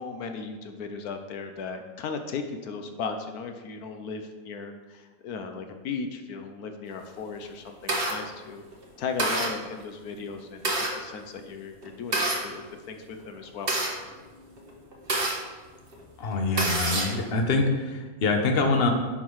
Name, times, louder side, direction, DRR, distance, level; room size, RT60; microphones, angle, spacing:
voice 1, 0.0-8.6 9.0-13.7, left 5 dB, 80° left, 6 dB, 1.3 m, -36 dB
sound 1, 7.2-8.1 8.7-8.8 9.2-9.5 10.3-10.9 11.8-12.4 13.2-15.4 15.9-16.0 16.3-17.2, right 2 dB, 40° right, 1.5 m, -27 dB
voice 2, 16.2-18.9, left 3 dB, 45° left, 4 dB, 1.1 m, -25 dB
10.5 x 5.9 x 4.7 m, 1.3 s
omnidirectional pair, 1.6 m